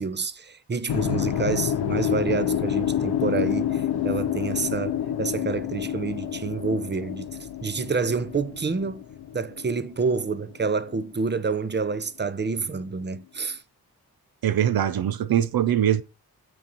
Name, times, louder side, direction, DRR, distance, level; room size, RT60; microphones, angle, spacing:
voice 1, 0.0-9.0 9.3-13.6, right 4 dB, 30° right, 0.7 m, -28 dB
sound 1, 0.9-11.0, left 10 dB, 80° left, 0.6 m, -28 dB
voice 2, 14.4-16.0, right 10 dB, 70° right, 0.6 m, -22 dB
7.8 x 3.0 x 5.3 m
cardioid pair, 45°, 37 cm